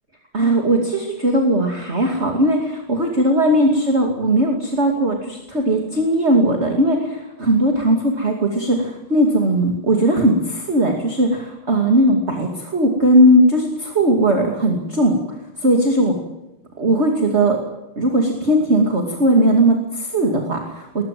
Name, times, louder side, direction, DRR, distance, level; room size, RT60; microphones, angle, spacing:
voice 1, 0.3-15.2 15.6-16.2 16.8-17.6 18.0-21.0, right 1 dB, 30° right, 2 dB, 2.8 m, -18 dB
21.5 x 19.5 x 7.7 m, 0.95 s
omnidirectional pair, 2.4 m